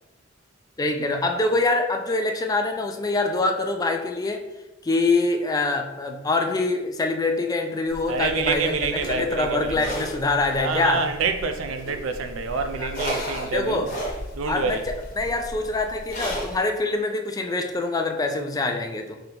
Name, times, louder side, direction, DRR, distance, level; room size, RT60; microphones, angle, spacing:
voice 1, 0.8-4.4 4.8-11.0 12.8-12.9 13.5-13.9 14.5-19.2, left 2 dB, 20° left, 0.3 m, -25 dB
sound 1, 7.9-16.6, equal, 45° left, 1.1 m, -35 dB
voice 2, 8.1-9.8 10.6-13.9 14.3-14.8, right 5 dB, 80° right, 0.4 m, -27 dB
3.8 x 3.4 x 2.9 m
head